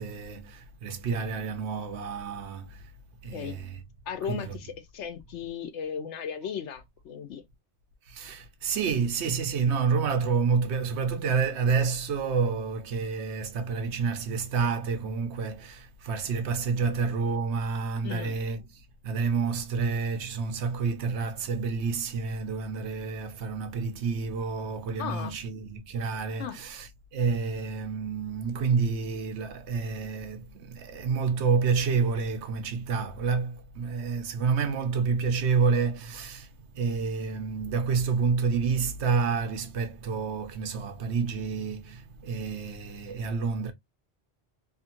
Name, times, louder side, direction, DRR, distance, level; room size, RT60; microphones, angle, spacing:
voice 1, 0.0-2.6 3.2-3.6 4.3-4.4 8.1-18.6 19.0-26.9 27.1-36.5 36.7-43.7, right 5 dB, 80° right, 1.0 m, -29 dB
voice 2, 4.1-7.4 16.8-17.0 18.0-18.3 25.0-25.4 26.4-26.6, left 7 dB, 90° left, 1.0 m, -36 dB
2.7 x 2.6 x 2.7 m
omnidirectional pair, 1.1 m